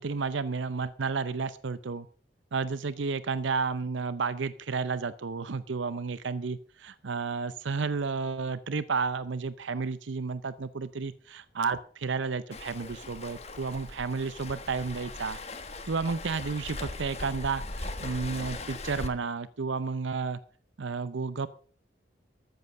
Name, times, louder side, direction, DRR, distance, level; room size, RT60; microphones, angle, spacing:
voice 1, 0.0-2.1 2.5-15.4 15.9-20.4 20.8-21.5, right 4 dB, 80° right, 15 dB, 0.6 m, -32 dB
Waves surf, 12.5-19.1, left 2 dB, 35° left, 1.2 m, -39 dB
14.0 x 7.4 x 6.5 m, 0.44 s
head